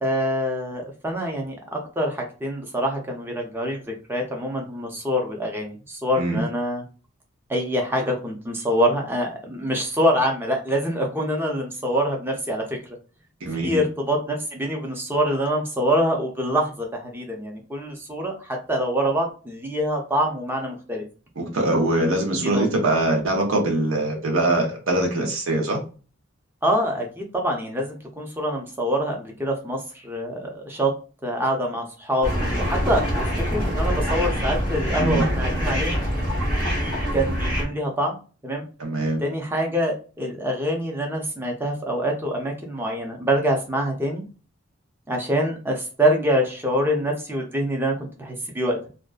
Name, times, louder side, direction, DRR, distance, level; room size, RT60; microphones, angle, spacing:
voice 1, 0.0-3.8 4.1-6.8 7.5-12.8 13.5-21.0 22.3-22.7 26.6-30.9 31.2-33.1 33.4-36.0 36.6-38.2 38.4-38.6 39.2-44.2 45.1-48.9, equal, 10° right, 1 dB, 0.4 m, -25 dB
voice 2, 13.4-13.8 21.4-25.8 35.0-35.3 38.8-39.2, right 1 dB, 80° right, 1 dB, 0.7 m, -23 dB
sound 1, 32.2-37.6, equal, 45° right, 1.1 m, -24 dB
2.5 x 2.2 x 2.3 m, 0.36 s
head